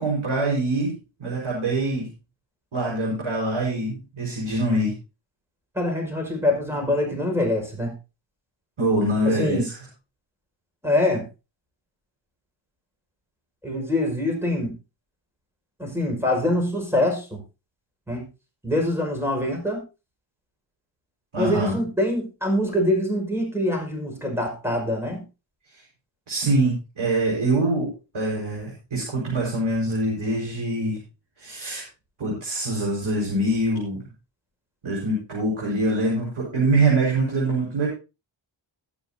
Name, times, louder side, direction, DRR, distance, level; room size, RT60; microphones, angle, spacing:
voice 1, 0.0-2.1 2.7-4.9 8.8-9.7 21.3-21.7 26.3-31.0 31.4-31.8 32.2-34.0 34.8-37.9, right 2 dB, 80° right, -4 dB, 5.0 m, -24 dB
voice 2, 5.8-7.9 9.2-9.6 10.8-11.3 13.6-14.7 15.8-17.4 18.1-18.3 18.6-19.8 21.4-25.2, left 1 dB, 5° right, 1 dB, 5.3 m, -24 dB
20.5 x 7.2 x 2.8 m, 0.29 s
wide cardioid pair, 95°, 47 cm